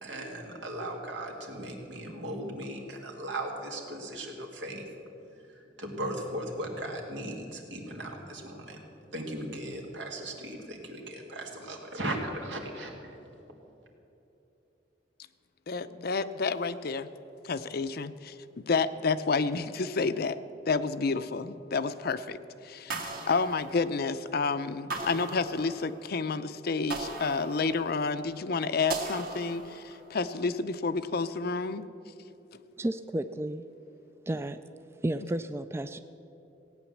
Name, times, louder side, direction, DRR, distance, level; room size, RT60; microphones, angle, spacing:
voice 1, 0.0-4.9 5.5-8.8 9.1-13.1, right 1 dB, 80° right, 1 dB, 2.2 m, -37 dB
voice 2, 15.7-17.1 17.4-20.4 20.7-31.9, left 4 dB, 60° left, 12 dB, 0.6 m, -30 dB
sound 1, 22.9-24.2 24.9-26.1 26.9-28.1 28.9-30.1, right 3 dB, 55° right, 1.9 m, -38 dB
voice 3, 32.8-33.7 34.3-34.6 35.0-36.0, right 1 dB, 15° right, 10 dB, 0.3 m, -32 dB
17.0 x 9.2 x 7.3 m, 2.9 s
head